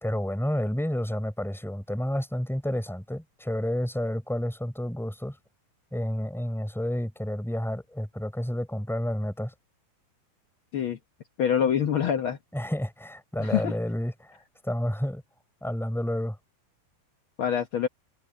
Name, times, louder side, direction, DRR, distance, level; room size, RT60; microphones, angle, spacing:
voice 1, 0.0-5.4 5.9-9.5 12.5-15.2 15.6-16.4, equal, ahead, 3.5 m, -30 dB
voice 2, 11.4-12.4 13.4-13.7 17.4-17.9, left 8 dB, 65° left, 1.2 m, -25 dB
omnidirectional pair, 4.0 m